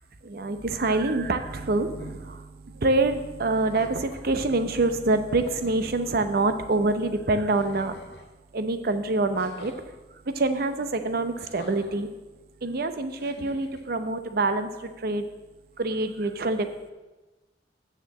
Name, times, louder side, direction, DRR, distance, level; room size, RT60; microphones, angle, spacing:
voice 1, 0.2-8.1 8.5-9.7 10.1-12.1 12.6-15.3 15.8-16.9, right 2 dB, 55° right, 9 dB, 0.7 m, -26 dB
sound 1, 2.0-2.3 3.5-4.3 5.0-5.1 5.4-5.9 7.5-8.3 9.4-9.8 11.4-12.0 13.2-13.8, left 2 dB, 65° left, 1.3 m, -46 dB
6.6 x 6.5 x 7.5 m, 1.1 s
head